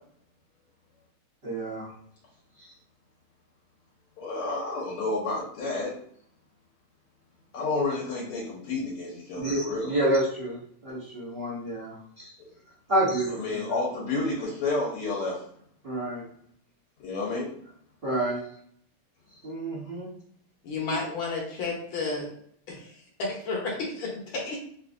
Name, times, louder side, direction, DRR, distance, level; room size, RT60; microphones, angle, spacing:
voice 1, 1.4-1.9 2.6-2.7 9.3-12.3 12.9-13.8 15.8-16.2 18.0-18.4 19.4-20.1 20.9-21.0, right 1 dB, 60° right, -8 dB, 0.5 m, -29 dB
voice 2, 4.2-5.9 7.5-9.9 13.3-15.4 17.0-17.5, left 3 dB, 85° left, -4 dB, 1.7 m, -30 dB
voice 3, 20.6-22.3 22.7-24.6, left 3 dB, 65° left, -2 dB, 1.5 m, -32 dB
4.0 x 2.4 x 2.5 m, 0.64 s
omnidirectional pair, 2.4 m